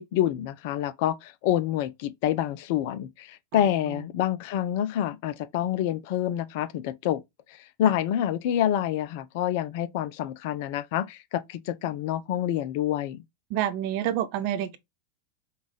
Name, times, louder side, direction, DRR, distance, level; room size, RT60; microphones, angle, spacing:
voice 1, 0.0-7.2 7.5-13.2, left 11 dB, 50° left, 0.4 m, -27 dB
voice 2, 3.5-4.0 13.5-14.8, right 11 dB, 45° right, 0.6 m, -29 dB
5.3 x 2.4 x 3.2 m
figure-of-eight pair, 90°, 0 cm